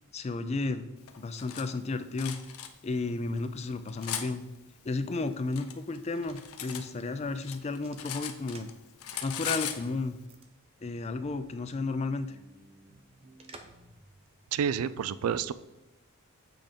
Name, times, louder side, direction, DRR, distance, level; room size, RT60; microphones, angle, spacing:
voice 1, 0.1-0.9 1.2-2.4 2.8-4.4 4.8-8.7 9.2-10.2 10.8-12.4, left 3 dB, 30° left, 10 dB, 0.4 m, -33 dB
Cutlery silverware, 1.1-1.6 2.2-2.7 3.4-4.3 5.1-6.9 7.2-8.7 9.0-9.8, left 9 dB, 85° left, 0.7 m, -38 dB
sound 1, 3.8-8.8 9.1-9.9 10.3-10.5 10.8-10.9 13.4-13.9 14.3-14.4, right 3 dB, 25° right, 0.6 m, -55 dB
sound 2, 11.2-11.6 11.9-14.2, right 1 dB, 45° right, 1.0 m, -58 dB
voice 2, 14.5-15.5, right 7 dB, 80° right, 16 dB, 0.3 m, -29 dB
7.7 x 3.6 x 5.1 m, 0.97 s
head